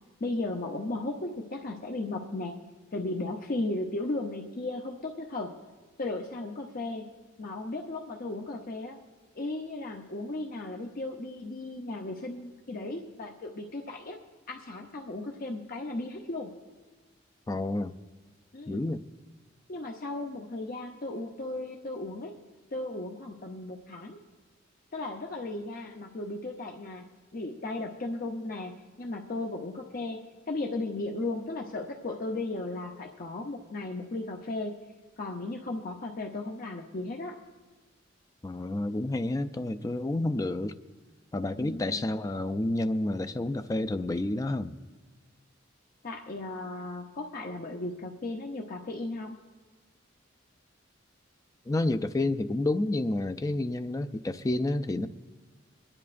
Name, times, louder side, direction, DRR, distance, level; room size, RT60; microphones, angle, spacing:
voice 1, 0.2-2.5 2.9-5.5 6.0-7.1 7.4-9.0 9.3-14.2 14.5-16.5 18.5-18.8 19.7-22.3 22.7-24.2 24.9-27.0 27.3-28.7 29.0-30.2 30.5-34.7 35.2-37.4 41.6-42.0 46.0-49.3, left 2 dB, 45° left, 1 dB, 0.7 m, -35 dB
voice 2, 17.5-17.9 18.7-19.0 38.4-40.7 41.3-44.7 51.7-55.1, left 2 dB, 15° left, 9 dB, 0.3 m, -29 dB
24.0 x 10.5 x 2.5 m, 1.3 s
head